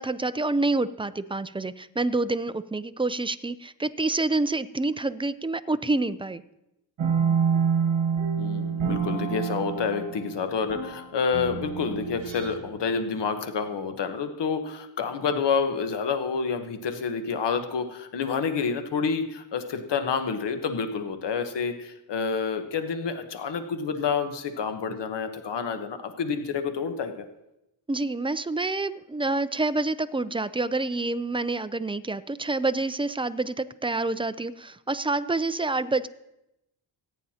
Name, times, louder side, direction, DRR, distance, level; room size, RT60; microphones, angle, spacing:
voice 1, 0.0-6.4 27.9-36.1, right 2 dB, 10° right, 13 dB, 0.4 m, -27 dB
sound 1, 7.0-12.9, right 7 dB, 85° right, 1.4 m, -27 dB
voice 2, 8.4-27.3, left 5 dB, 65° left, 7 dB, 1.2 m, -28 dB
25.5 x 9.2 x 2.8 m, 0.89 s
cardioid pair, 85°, 45 cm